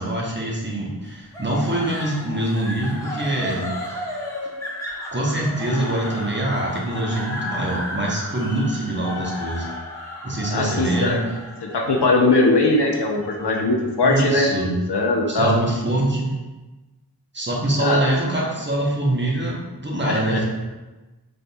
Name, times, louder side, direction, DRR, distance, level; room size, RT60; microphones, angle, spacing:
voice 1, 0.0-3.7 4.0-4.2 5.1-9.7 10.2-11.3 14.0-14.7 15.3-16.3 17.3-20.4, right 1 dB, 30° right, -3 dB, 0.9 m, -24 dB
sound 1, 1.3-14.5, left 1 dB, 10° left, 0.8 m, -34 dB
voice 2, 10.5-11.2 11.6-15.5 17.8-18.0 20.1-20.4, left 2 dB, 90° left, 1 dB, 0.6 m, -20 dB
4.1 x 3.4 x 2.3 m, 1.2 s
wide cardioid pair, 40°, 39 cm